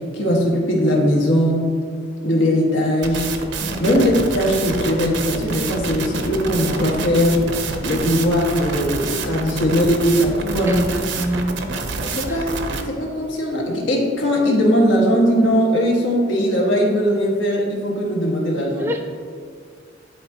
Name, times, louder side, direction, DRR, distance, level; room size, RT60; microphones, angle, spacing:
voice 1, 0.0-1.7 2.2-3.3 3.8-7.4 7.8-10.8 12.0-18.9, equal, 80° left, -1 dB, 1.4 m, -19 dB
sound 1, 3.0-12.8, right 4 dB, 65° right, 0.6 m, -28 dB
voice 2, 3.6-4.0 10.7-11.8 12.3-12.4 18.8-19.0, equal, 10° right, 3 dB, 0.5 m, -26 dB
11.0 x 4.0 x 2.7 m, 2.2 s
head